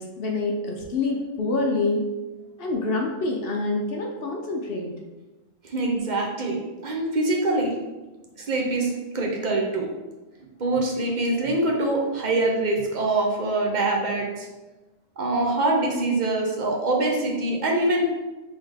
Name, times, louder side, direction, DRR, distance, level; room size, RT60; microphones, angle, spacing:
voice 1, 0.0-2.1 2.6-4.9, left 2 dB, 60° left, 1 dB, 0.7 m, -26 dB
voice 2, 5.6-7.8 8.5-9.9 10.6-14.5 15.2-18.1, right 2 dB, 45° right, 0 dB, 0.7 m, -24 dB
3.6 x 3.6 x 3.5 m, 1.1 s
omnidirectional pair, 1.3 m